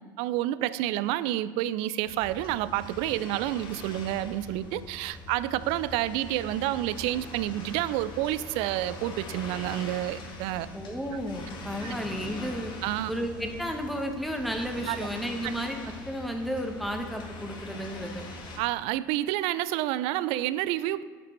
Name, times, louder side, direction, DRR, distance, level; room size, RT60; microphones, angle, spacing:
voice 1, 0.2-10.7 11.1-11.2 11.8-11.9 12.8-13.1 14.9-15.1 15.4-15.5 18.6-21.0, right 14 dB, 60° right, 16 dB, 0.4 m, -29 dB
sound 1, 2.1-18.6, left 2 dB, 45° left, 1.7 m, -42 dB
voice 2, 10.7-12.7 13.1-15.8 16.1-18.3, equal, ahead, 3 dB, 1.3 m, -33 dB
10.5 x 6.6 x 3.2 m, 1.4 s
hypercardioid pair, 65°, 11 cm